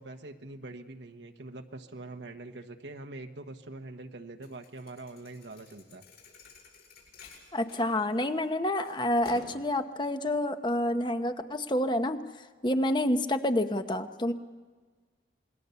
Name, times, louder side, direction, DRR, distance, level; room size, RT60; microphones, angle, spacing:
voice 1, 0.0-6.0, right 2 dB, 85° right, 4 dB, 1.3 m, -44 dB
Thump thud, 4.4-8.5 8.8-9.7, left 2 dB, 65° left, 7.3 m, -50 dB
voice 2, 7.5-12.2 12.6-14.3, left 1 dB, 25° left, 8 dB, 1.0 m, -28 dB
27.0 x 20.5 x 7.0 m, 1.5 s
head